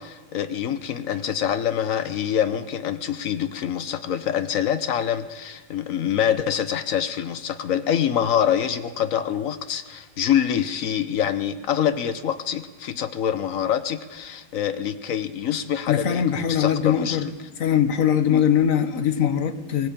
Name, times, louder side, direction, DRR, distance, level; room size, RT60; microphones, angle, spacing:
voice 1, 0.0-17.2, left 9 dB, 75° left, 11 dB, 0.7 m, -25 dB
voice 2, 15.9-17.3 17.6-19.9, left 9 dB, 50° left, 10 dB, 1.1 m, -21 dB
19.5 x 16.5 x 8.6 m, 1.3 s
omnidirectional pair, 2.4 m